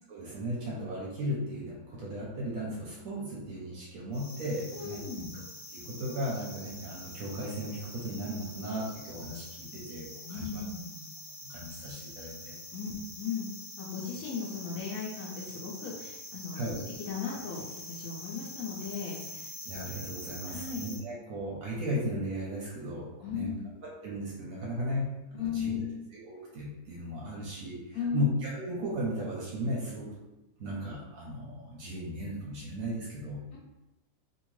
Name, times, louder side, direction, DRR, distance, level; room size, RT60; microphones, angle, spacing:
voice 1, 0.1-5.3 5.7-10.6 11.4-12.6 12.8-13.0 16.5-16.8 19.6-23.5 24.0-25.8 26.1-30.2 30.6-33.4, equal, 65° right, -3 dB, 0.9 m, -36 dB
sound 1, 4.1-21.0, left 1 dB, 30° left, 0.3 m, -45 dB
voice 2, 4.7-5.3 10.2-11.0 12.7-13.5 13.8-16.7 17.1-17.6 17.9-19.5 20.5-20.9 23.2-23.7 25.4-26.0 27.9-28.3, left 6 dB, 70° left, -3 dB, 0.9 m, -36 dB
2.7 x 2.6 x 3.0 m, 0.98 s
omnidirectional pair, 1.8 m